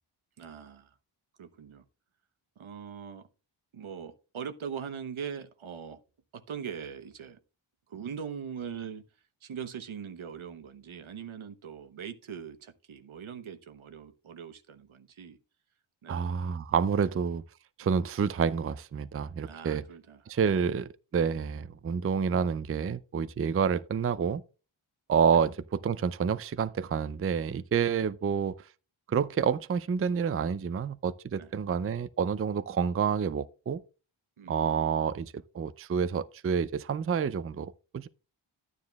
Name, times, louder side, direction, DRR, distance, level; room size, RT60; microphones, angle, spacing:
voice 1, 0.4-1.0 1.4-1.8 2.6-3.3 3.7-6.0 6.3-7.4 7.9-9.0 9.4-15.4 16.0-16.3 17.0-17.1 17.8-18.0 19.5-20.6 31.4-31.5 34.4-34.7, right 7 dB, 75° right, 1.0 m, -41 dB
voice 2, 16.1-17.4 17.8-19.8 20.3-24.4 25.1-28.7 29.1-33.8 34.5-38.1, right 6 dB, 30° right, 0.4 m, -28 dB
11.5 x 9.6 x 2.3 m
cardioid pair, 50°, 49 cm